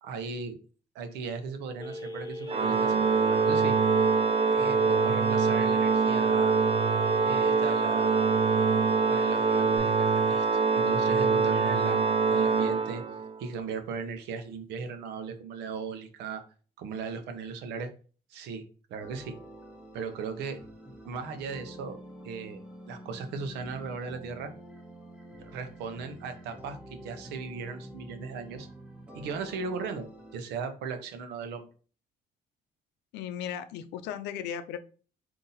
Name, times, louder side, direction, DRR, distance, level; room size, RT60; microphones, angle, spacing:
voice 1, 0.0-0.6 0.9-3.0 3.3-3.7 4.5-6.6 7.2-8.3 9.1-10.4 10.7-13.0 13.4-16.4 16.8-17.9 18.3-18.6 18.9-19.3 19.9-20.6 21.0-22.0 22.2-22.6 22.9-24.5 25.4-28.7 29.1-30.1 30.3-31.7, right 5 dB, 85° right, 7 dB, 0.8 m, -37 dB
Telephone, 1.8-9.8, equal, 25° left, 0.8 m, -39 dB
Organ, 2.5-13.4, right 5 dB, 35° right, 0.4 m, -24 dB
sound 1, 19.0-30.4, right 1 dB, 5° right, 0.9 m, -47 dB
voice 2, 33.1-34.8, left 9 dB, 90° left, 10 dB, 0.5 m, -36 dB
4.0 x 2.8 x 4.0 m, 0.39 s
cardioid pair, 110°, 17 cm